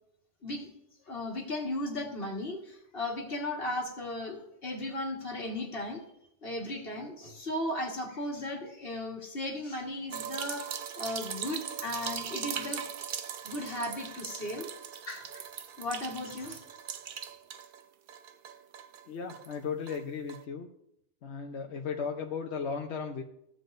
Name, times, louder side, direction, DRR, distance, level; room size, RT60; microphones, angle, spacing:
voice 1, 1.1-6.0 6.4-12.9 13.4-14.7 15.1-15.5 15.8-16.6, left 1 dB, 50° left, 0 dB, 1.9 m, -36 dB
sound 1, 10.1-17.8 18.1-19.6 19.9-20.0 20.3-20.4, right 8 dB, 55° right, 0.6 m, -40 dB
voice 2, 19.1-20.7 21.2-23.2, left 6 dB, 70° left, 2 dB, 1.0 m, -36 dB
15.5 x 7.6 x 2.6 m, 0.77 s
omnidirectional pair, 1.2 m